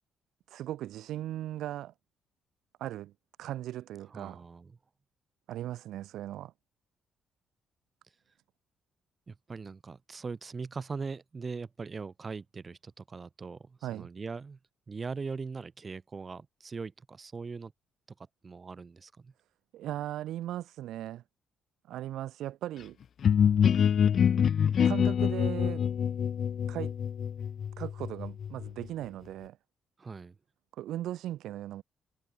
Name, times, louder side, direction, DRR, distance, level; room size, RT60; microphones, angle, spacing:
voice 1, 0.5-1.9 2.8-3.1 3.4-4.4 5.5-6.5 13.8-14.1 19.7-21.2 21.9-23.0 24.8-25.9 26.7-26.9 27.8-29.6 30.7-31.8, right 13 dB, 80° right, 1.0 m, -38 dB
voice 2, 4.1-4.8 9.3-14.6 14.9-17.7 18.4-19.3 30.0-30.3, right 4 dB, 25° right, 2.7 m, -40 dB
sound 1, 23.2-28.9, left 8 dB, 45° left, 0.4 m, -26 dB
cardioid pair, 145°, 0 cm